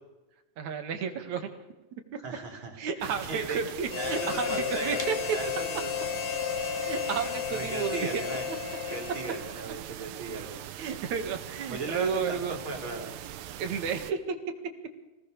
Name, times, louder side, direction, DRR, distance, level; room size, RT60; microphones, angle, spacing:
voice 1, 0.6-1.5 2.8-5.2 6.8-8.1 8.5-8.6 10.8-12.6 13.6-14.4, right 6 dB, 60° right, 5 dB, 3.1 m, -32 dB
voice 2, 2.2-3.6 4.0-5.9 6.4-6.7 7.5-8.5 8.9-10.6 11.7-13.1, right 3 dB, 35° right, 1 dB, 4.0 m, -37 dB
sound 1, 3.0-14.1, right 12 dB, 85° right, 2.7 m, -42 dB
Harmonica, 3.9-9.7, left 9 dB, 85° left, 1.2 m, -33 dB
sound 2, 5.0-10.8, equal, 10° left, 1.3 m, -49 dB
24.0 x 18.5 x 6.7 m, 1.1 s
omnidirectional pair, 4.0 m